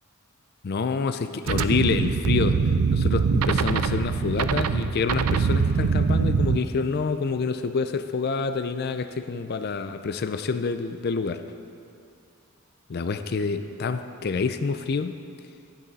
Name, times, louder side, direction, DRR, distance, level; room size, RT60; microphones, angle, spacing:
voice 1, 0.6-2.6 2.9-11.4 12.9-15.1, left 4 dB, 45° left, 9 dB, 0.4 m, -27 dB
sound 1, 1.5-6.6, right 5 dB, 80° right, 0.4 m, -23 dB
12.5 x 10.5 x 4.1 m, 2.4 s
head